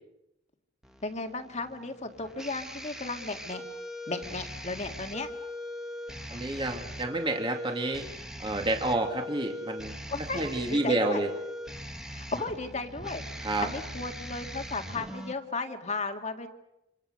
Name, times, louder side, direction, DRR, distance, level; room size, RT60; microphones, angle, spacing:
sound 1, 0.8-15.3, left 1 dB, 5° right, 1.9 m, -41 dB
voice 1, 1.0-3.6 4.1-5.3 10.1-11.2 12.1-16.5, left 3 dB, 35° left, 5 dB, 2.1 m, -35 dB
voice 2, 6.3-8.1 8.4-9.9 10.3-11.3 13.4-13.7, right 2 dB, 25° right, 3 dB, 2.4 m, -29 dB
27.5 x 26.5 x 6.6 m, 0.86 s
head